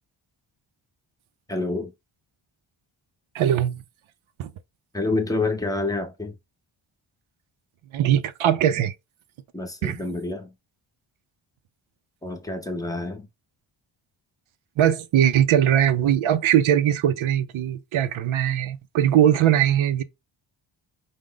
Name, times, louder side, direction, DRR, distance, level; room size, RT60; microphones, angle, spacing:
voice 1, 1.5-1.9 4.9-6.4 9.5-10.5 12.2-13.3, left 2 dB, 10° left, 0.7 m, -28 dB
voice 2, 3.3-3.8 4.4-4.5 7.9-8.9 9.8-10.0 14.8-20.0, right 10 dB, 85° right, 0.6 m, -20 dB
4.9 x 2.1 x 3.7 m
wide cardioid pair, 160°, 47 cm